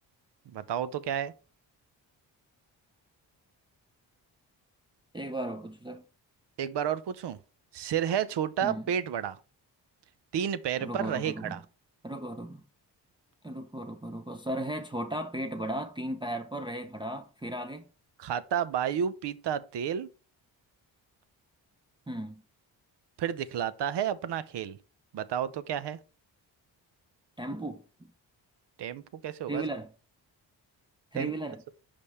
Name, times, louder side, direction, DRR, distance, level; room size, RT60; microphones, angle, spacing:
voice 1, 0.5-1.3 6.6-7.4 7.7-9.4 10.3-11.6 18.2-20.1 23.2-24.8 25.1-26.0 28.8-29.6 31.1-31.3, right 9 dB, 65° right, 0.7 m, -31 dB
voice 2, 5.1-6.0 8.6-8.9 10.8-11.6 12.0-12.6 13.4-17.8 22.1-22.4 27.4-28.1 29.5-29.9 31.1-31.6, right 1 dB, 10° right, 0.6 m, -36 dB
5.2 x 5.1 x 4.2 m
cardioid pair, 65°, 44 cm